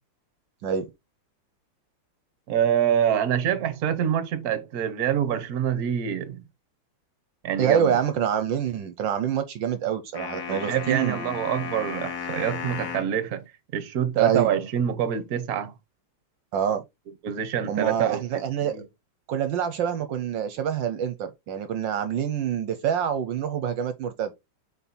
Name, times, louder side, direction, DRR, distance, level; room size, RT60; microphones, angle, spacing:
voice 1, 2.5-6.4 7.4-7.9 10.5-15.7 17.2-18.4 18.7-18.8, right 9 dB, 55° right, 1.3 m, -26 dB
voice 2, 7.6-11.4 14.2-14.5 16.5-16.8 17.7-18.9 19.3-24.3, right 8 dB, 75° right, 1.4 m, -26 dB
sound 1, 10.1-13.2, left 6 dB, 55° left, 1.8 m, -34 dB
5.4 x 4.5 x 4.1 m
omnidirectional pair, 2.1 m